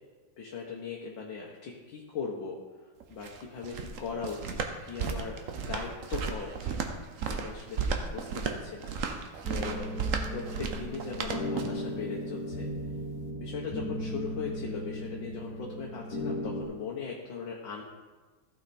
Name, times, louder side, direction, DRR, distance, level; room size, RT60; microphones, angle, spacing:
voice 1, 0.4-2.6 3.1-6.8 7.2-9.0 9.5-9.9 10.3-12.7 13.3-17.8, left 5 dB, 65° left, -2 dB, 1.7 m, -39 dB
sound 1, 3.0-11.9, right 5 dB, 55° right, 0.9 m, -34 dB
sound 2, 9.4-16.6, left 1 dB, 50° left, 2.0 m, -36 dB
15.0 x 5.9 x 4.3 m, 1.3 s
omnidirectional pair, 2.2 m